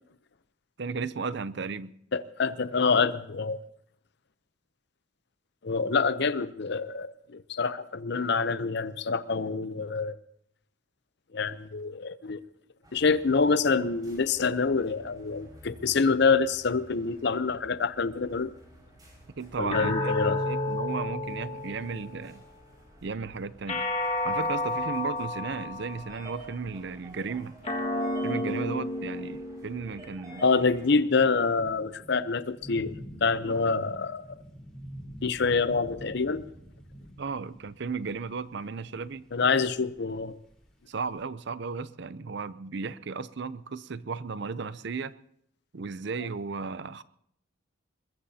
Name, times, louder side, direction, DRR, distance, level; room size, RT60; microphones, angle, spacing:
voice 1, 0.8-1.9 19.4-22.4 23.0-23.8 24.2-27.6 28.2-30.5 33.5-33.6 37.2-39.3 40.9-45.1 45.7-47.0, right 4 dB, 55° right, 16 dB, 0.6 m, -35 dB
voice 2, 2.1-3.6 5.6-10.2 11.3-12.4 12.9-18.5 19.6-20.4 30.4-32.9 33.2-34.4 35.2-36.4 39.3-40.4, left 4 dB, 55° left, 13 dB, 0.7 m, -26 dB
sound 1, 12.8-31.0, right 1 dB, 20° right, 5.5 m, -52 dB
sound 2, 19.7-22.3 23.7-26.2 27.6-30.3, left 1 dB, 30° left, 1.8 m, -31 dB
sound 3, 30.3-41.2, equal, 5° left, 4.3 m, -48 dB
22.0 x 21.5 x 2.8 m, 0.71 s
head